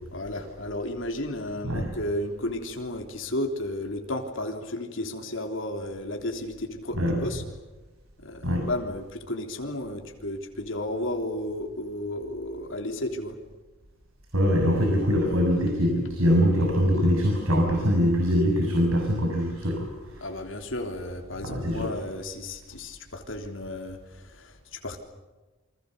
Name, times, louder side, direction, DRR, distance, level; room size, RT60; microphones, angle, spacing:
voice 1, 0.1-7.4 8.2-13.4 20.2-25.0, left 1 dB, 65° left, 3 dB, 3.5 m, -33 dB
voice 2, 14.3-20.2 21.4-21.9, equal, 80° right, 2 dB, 6.9 m, -23 dB
29.0 x 26.0 x 6.8 m, 1.2 s
head